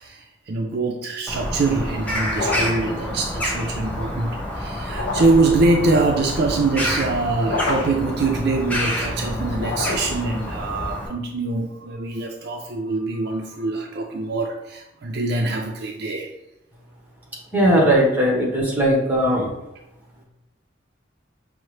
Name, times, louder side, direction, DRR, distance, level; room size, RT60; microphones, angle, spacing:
voice 1, 0.0-16.3, right 3 dB, 55° right, 2 dB, 0.4 m, -23 dB
Bird vocalization bird call bird song, 1.3-11.1, equal, 5° left, 0.5 m, -28 dB
sound 1, 2.3-2.9 4.9-5.5 7.4-8.1 9.5-10.3, left 3 dB, 70° left, 0.6 m, -28 dB
voice 2, 17.5-19.5, equal, 10° right, -3 dB, 0.9 m, -18 dB
5.4 x 2.0 x 3.1 m, 0.90 s
head